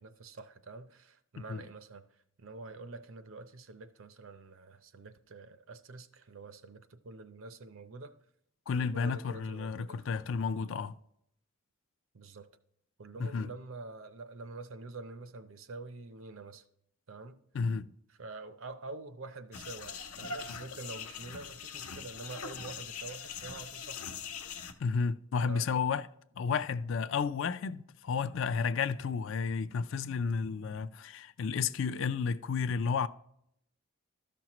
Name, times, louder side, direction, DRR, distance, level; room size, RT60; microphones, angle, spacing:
voice 1, 0.0-8.2 8.9-10.1 12.1-12.5 13.0-16.6 17.1-17.4 18.2-24.1 25.5-25.7, right 3 dB, 70° right, 0.6 m, -46 dB
voice 2, 8.7-11.0 13.2-13.5 17.5-17.9 24.8-26.1 26.4-33.1, left 5 dB, 60° left, 0.4 m, -32 dB
sound 1, 19.5-24.7, left 6 dB, 90° left, 0.8 m, -42 dB
13.0 x 6.1 x 3.0 m
head